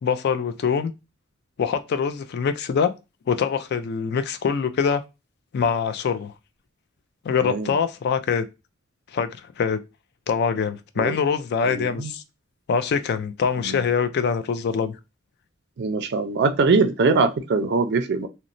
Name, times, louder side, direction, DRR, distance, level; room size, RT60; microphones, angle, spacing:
voice 1, 0.0-0.9 1.6-2.9 3.3-5.0 5.5-6.3 7.2-8.5 9.1-9.8 10.3-12.2 12.7-15.0, left 6 dB, 55° left, 0.3 m, -24 dB
voice 2, 7.4-7.7 11.0-11.2 11.7-12.1 13.6-13.8 15.8-18.3, right 4 dB, 55° right, 0.4 m, -22 dB
3.0 x 2.0 x 2.5 m
head